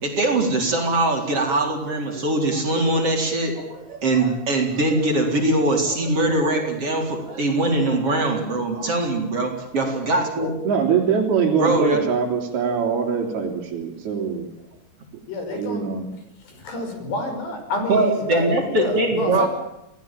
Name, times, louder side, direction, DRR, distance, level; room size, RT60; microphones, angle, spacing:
voice 1, 0.0-10.5 11.6-12.0 17.9-19.5, right 2 dB, 30° right, 2 dB, 4.5 m, -22 dB
voice 2, 10.6-14.5 15.5-16.1, right 6 dB, 50° right, -1 dB, 4.8 m, -23 dB
voice 3, 15.3-15.9 16.5-19.5, left 2 dB, 55° left, 6 dB, 7.3 m, -28 dB
28.5 x 18.5 x 8.9 m, 0.86 s
omnidirectional pair, 5.9 m